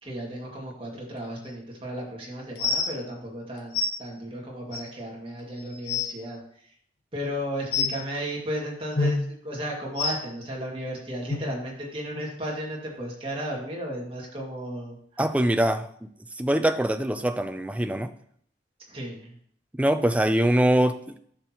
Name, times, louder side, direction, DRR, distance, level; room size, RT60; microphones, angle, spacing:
voice 1, 0.0-6.4 7.1-9.2 9.4-15.2 18.9-19.3, equal, 30° right, -2 dB, 2.1 m, -34 dB
sound 1, 1.5-1.6 2.6-2.9 3.7-3.9 4.7-4.8 5.4-5.5 5.7-6.1 7.7-7.9 8.9-9.1 10.0-10.1 11.3-11.4 12.1-12.2 12.9-13.0, left 4 dB, 60° left, 1.4 m, -26 dB
voice 2, 15.2-16.1 16.4-18.1 19.8-21.2, right 1 dB, 10° right, 9 dB, 0.4 m, -23 dB
10.5 x 6.3 x 3.0 m, 0.64 s
head